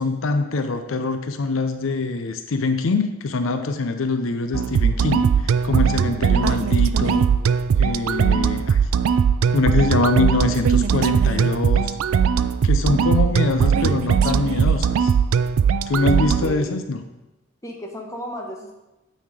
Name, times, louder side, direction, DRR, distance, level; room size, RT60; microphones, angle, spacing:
voice 1, 0.0-7.3 7.8-8.8 9.5-11.9 12.6-15.1 15.9-17.0, left 3 dB, 75° left, 8 dB, 0.5 m, -23 dB
sound 1, 4.5-16.5, right 7 dB, 85° right, 0.3 m, -19 dB
voice 2, 6.0-6.5 16.1-16.7 17.6-18.7, equal, 15° left, 0 dB, 1.0 m, -35 dB
9.1 x 4.2 x 4.9 m, 1.0 s
head